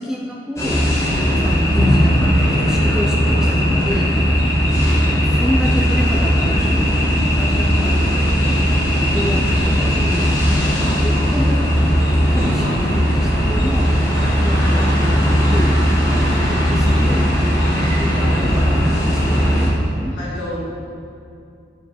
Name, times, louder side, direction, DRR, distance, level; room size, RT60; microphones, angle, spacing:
voice 1, 0.0-4.1 5.0-8.8 9.1-11.6 12.3-14.0 14.4-14.9 15.3-15.8 16.2-17.3 18.0-20.1, equal, 5° right, -2 dB, 0.4 m, -28 dB
sound 1, 0.6-19.7, equal, 15° left, 1.4 m, -17 dB
voice 2, 1.1-1.5 4.4-4.9 10.8-11.8 12.6-12.8 17.6-19.1 19.9-20.6, left 1 dB, 85° left, -11 dB, 1.5 m, -33 dB
8.3 x 4.5 x 4.3 m, 2.5 s
head